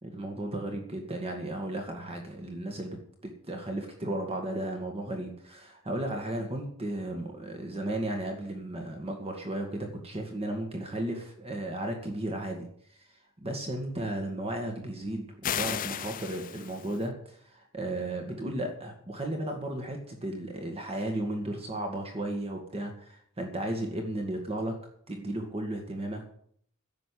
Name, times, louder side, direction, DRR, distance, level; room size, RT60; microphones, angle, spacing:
voice 1, 0.0-3.0 3.2-24.7 25.1-26.3, right 1 dB, 25° right, 3 dB, 1.9 m, -34 dB
sound 1, 15.4-17.0, left 10 dB, 40° left, 0.4 m, -34 dB
11.0 x 7.9 x 10.0 m, 0.63 s
head